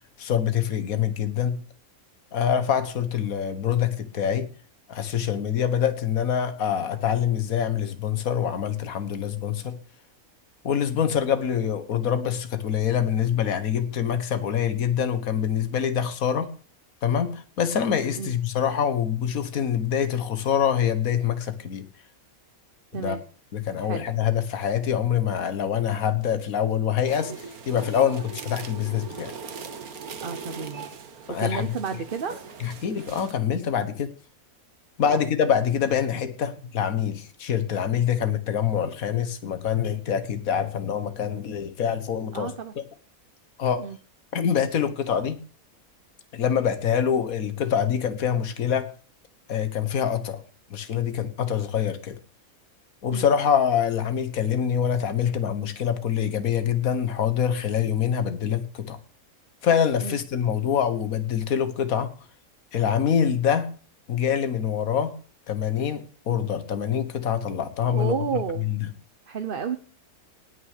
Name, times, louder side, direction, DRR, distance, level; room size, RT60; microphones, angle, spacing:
voice 1, 0.2-1.6 2.3-4.5 4.9-9.8 10.6-16.5 17.0-21.8 22.9-23.2 23.5-29.3 31.3-31.8 32.6-34.1 35.0-42.8 43.6-43.9 44.3-45.4 46.3-48.9 49.5-50.4 50.7-52.2 53.0-59.0 59.6-62.1 62.7-63.7 64.1-65.1 65.5-68.9, left 8 dB, 70° left, 1.8 m, -25 dB
sound 1, 27.1-33.3, right 6 dB, 80° right, 1.8 m, -40 dB
voice 2, 30.2-30.9 31.4-32.4 35.1-35.2 42.3-42.7 43.8-44.0 53.1-53.3 60.0-60.2 67.9-68.7 69.3-69.8, right 6 dB, 45° right, 1.0 m, -31 dB
18.5 x 6.4 x 6.6 m
omnidirectional pair, 1.5 m